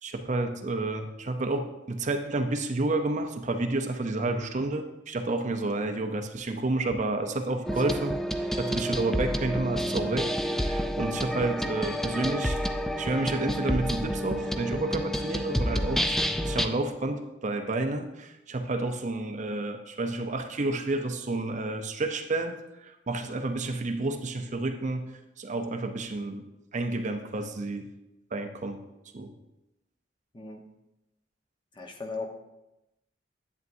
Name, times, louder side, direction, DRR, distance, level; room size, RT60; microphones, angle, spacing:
voice 1, 0.0-12.6 13.0-16.2 16.4-26.4 26.7-27.9 28.3-28.8 29.1-29.3, right 2 dB, 40° right, 6 dB, 0.6 m, -30 dB
sound 1, 7.7-16.7, equal, ahead, 0.3 m, -29 dB
voice 2, 31.8-32.3, left 3 dB, 25° left, 3 dB, 1.0 m, -37 dB
11.0 x 8.0 x 2.6 m, 0.93 s
head